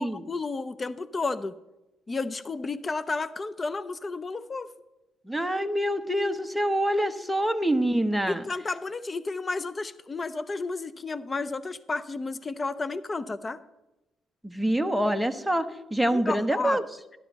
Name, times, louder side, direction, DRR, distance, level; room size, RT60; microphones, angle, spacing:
voice 1, 0.0-1.6 2.1-4.7 8.3-13.6 16.1-16.8, left 3 dB, 30° left, 14 dB, 0.5 m, -32 dB
voice 2, 5.2-8.4 14.4-16.8, right 1 dB, ahead, 7 dB, 1.0 m, -26 dB
12.5 x 11.5 x 4.1 m, 0.97 s
cardioid pair, 90°, 0 cm